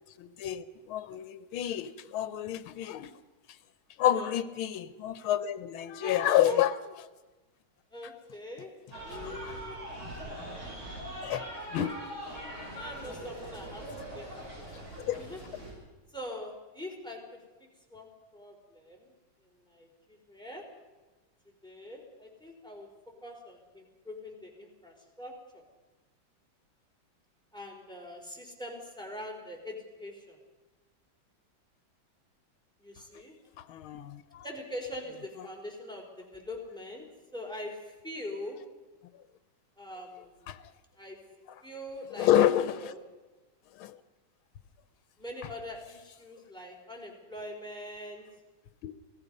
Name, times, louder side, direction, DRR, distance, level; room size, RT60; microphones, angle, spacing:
voice 1, 0.2-3.1 4.0-6.7 9.2-9.5 11.2-12.0 12.4-12.5 15.0-15.2 33.6-34.4 35.4-35.5 40.5-40.6 42.1-42.9 43.7-44.0 48.8-48.9, left 11 dB, 90° left, 13 dB, 1.7 m, -29 dB
voice 2, 6.0-6.6 7.9-8.7 9.0-9.8 12.7-13.8 14.1-14.8 15.1-15.4 16.1-17.4 17.9-19.1 19.5-20.6 21.6-22.9 23.2-25.6 27.5-30.4 32.8-33.3 34.4-37.1 37.3-38.6 39.8-40.4 41.0-41.2 41.6-42.3 42.7-43.0 45.2-48.3, left 1 dB, ahead, 1 dB, 4.0 m, -43 dB
sound 1, 8.9-15.7, right 1 dB, 90° right, 8.2 m, -42 dB
28.0 x 18.5 x 5.4 m, 1.2 s
omnidirectional pair, 2.2 m